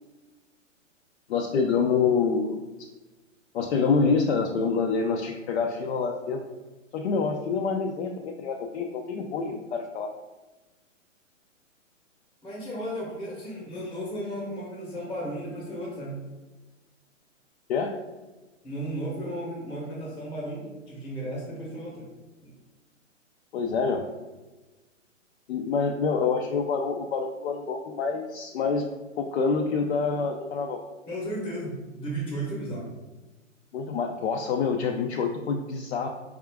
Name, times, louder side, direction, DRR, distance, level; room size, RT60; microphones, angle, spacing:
voice 1, 1.3-2.6 3.5-6.4 6.9-10.1 17.7-17.9 23.5-24.0 25.5-28.8 29.2-30.8 33.7-36.1, left 5 dB, 60° left, 2 dB, 0.4 m, -26 dB
voice 2, 12.4-16.2 18.6-22.1 22.4-22.5 31.1-32.9, right 1 dB, 10° left, -5 dB, 0.8 m, -34 dB
4.2 x 2.4 x 3.4 m, 1.2 s
hypercardioid pair, 135°, 39 cm